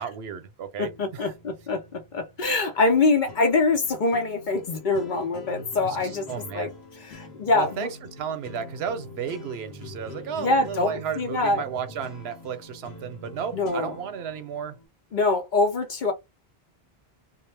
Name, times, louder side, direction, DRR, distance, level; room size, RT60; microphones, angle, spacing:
voice 1, 0.0-1.3 5.8-6.7 7.5-14.8, right 7 dB, 90° right, 0.9 m, -33 dB
voice 2, 0.8-6.7 7.1-7.9 10.4-11.6 13.5-14.0 15.1-16.1, left 3 dB, 55° left, 0.8 m, -24 dB
sound 1, 0.9-14.9, left 2 dB, 85° left, 1.0 m, -44 dB
2.2 x 2.1 x 3.2 m
omnidirectional pair, 1.0 m